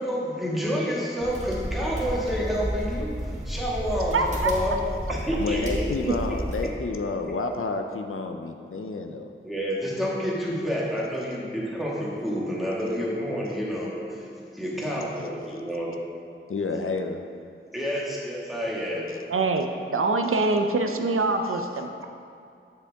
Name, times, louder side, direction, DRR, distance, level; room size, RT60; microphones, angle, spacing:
voice 1, 0.0-4.8 5.1-5.8 6.3-6.4 9.4-15.9 17.7-19.1, equal, ahead, -6 dB, 1.8 m, -29 dB
sound 1, 1.2-6.6, equal, 35° right, 1.6 m, -32 dB
voice 2, 4.1-4.5 6.1-6.2 19.3-22.0, right 3 dB, 85° right, 5 dB, 0.5 m, -24 dB
voice 3, 5.4-9.3 14.8-15.3 16.5-17.2 19.1-19.2 21.5-21.6, left 3 dB, 80° left, 5 dB, 0.5 m, -30 dB
7.3 x 6.8 x 3.5 m, 2.4 s
wide cardioid pair, 50°, 21 cm